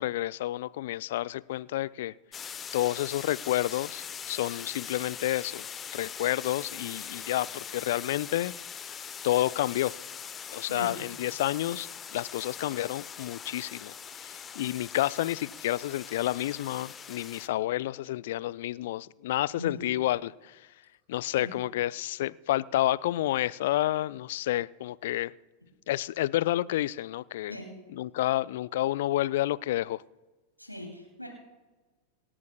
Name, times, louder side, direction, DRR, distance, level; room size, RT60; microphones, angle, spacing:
voice 1, 0.0-2.1 2.7-5.7 5.9-8.5 8.8-9.0 9.2-9.9 10.5-13.9 14.2-20.6 21.1-25.3 25.9-27.6 27.9-30.0, left 14 dB, 55° left, 0.3 m, -30 dB
sound 1, 2.3-17.5, left 7 dB, 25° left, 0.6 m, -42 dB
voice 2, 19.6-19.9 21.3-21.5 27.5-27.7 30.6-31.3, left 1 dB, 90° left, 2.6 m, -40 dB
27.0 x 11.0 x 2.2 m
figure-of-eight pair, 90°, 0 cm